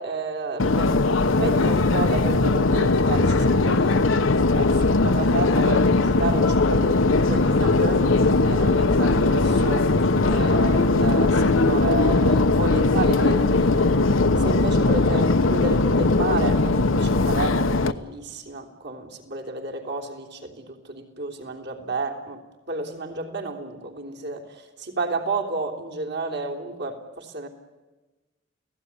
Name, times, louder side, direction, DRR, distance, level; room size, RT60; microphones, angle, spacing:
voice 1, 0.0-14.0 14.4-22.4 22.7-27.5, right 2 dB, 60° right, 1 dB, 3.4 m, -31 dB
Subway metro underground, 0.6-17.9, left 3 dB, 90° left, 1.0 m, -20 dB
30.0 x 17.5 x 9.9 m, 1.2 s
head